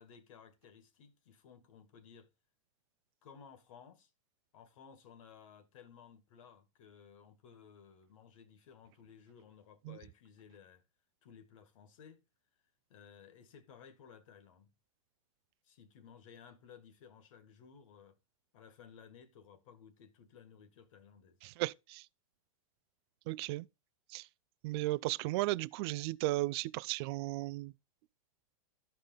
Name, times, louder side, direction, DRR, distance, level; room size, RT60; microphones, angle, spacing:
voice 1, 0.0-2.3 3.2-4.1 4.5-10.8 11.2-12.2 12.9-14.7 15.6-18.2 18.5-21.4, left 7 dB, 60° left, 1.8 m, -57 dB
voice 2, 21.4-22.1 23.3-23.7 24.1-24.3 24.6-27.7, right 19 dB, 45° right, 0.4 m, -35 dB
13.0 x 5.1 x 3.9 m
hypercardioid pair, 135°, 18 cm